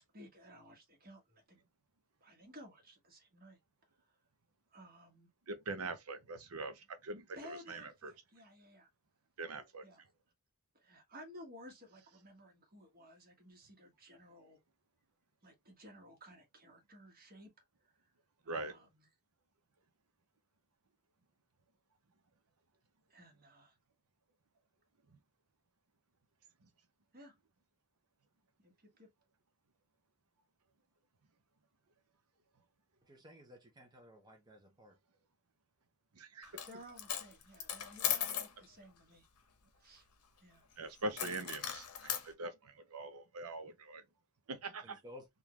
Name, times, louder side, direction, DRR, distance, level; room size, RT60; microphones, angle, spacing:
voice 1, 0.1-1.6 2.2-3.6 4.7-5.3 7.4-8.9 9.8-10.0 10.7-14.6 15.4-17.5 17.8-17.9 18.4-19.1 23.1-23.8 27.1-27.4 28.6-29.1 36.7-39.3 39.8-40.1 40.4-40.6, equal, 45° right, 1.4 m, -56 dB
voice 2, 5.5-8.1 9.4-9.8 18.5-18.7 36.2-36.6 40.8-44.0 44.5-45.0, right 2 dB, 70° right, 0.8 m, -43 dB
voice 3, 33.1-35.0 44.8-45.3, left 1 dB, 20° right, 0.7 m, -55 dB
Coin (dropping), 36.4-36.7 37.0-38.5 41.2-42.3, left 9 dB, 85° left, 0.8 m, -37 dB
3.7 x 2.4 x 3.0 m
head